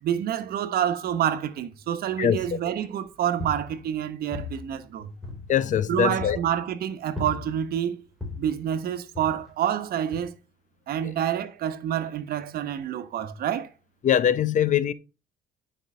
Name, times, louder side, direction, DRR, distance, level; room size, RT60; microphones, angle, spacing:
voice 1, 0.0-5.1 5.9-8.0 8.4-10.3 10.9-13.7, right 10 dB, 65° right, 1.3 m, -28 dB
sound 1, 2.4-2.8 3.2-4.0 4.3-5.8 6.2-6.6 7.2-7.8 8.2-8.6 9.1-9.7 10.1-10.2, left 3 dB, ahead, 4.4 m, -38 dB
voice 2, 5.5-6.4 11.0-11.1 14.0-14.9, left 9 dB, 45° left, 0.8 m, -22 dB
9.9 x 5.5 x 5.5 m
cardioid pair, 110°, 17 cm